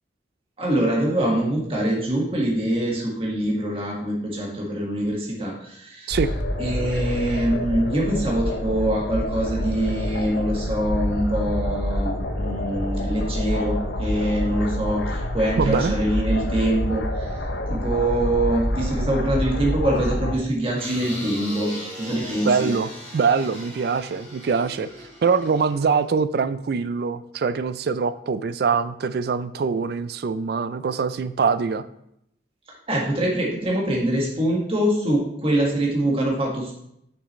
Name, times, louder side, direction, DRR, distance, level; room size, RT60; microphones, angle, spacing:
voice 1, 0.6-6.2 6.6-17.3 17.7-22.7 32.9-36.7, right 1 dB, 30° right, -3 dB, 1.6 m, -24 dB
sound 1, 6.1-20.4, left 1 dB, 65° left, 0.7 m, -27 dB
voice 2, 15.6-16.0 22.4-24.9 25.2-31.8, right 5 dB, 55° right, 14 dB, 0.3 m, -23 dB
sound 2, 20.8-26.1, equal, 10° left, 2.5 m, -38 dB
6.3 x 6.1 x 3.1 m, 0.76 s
head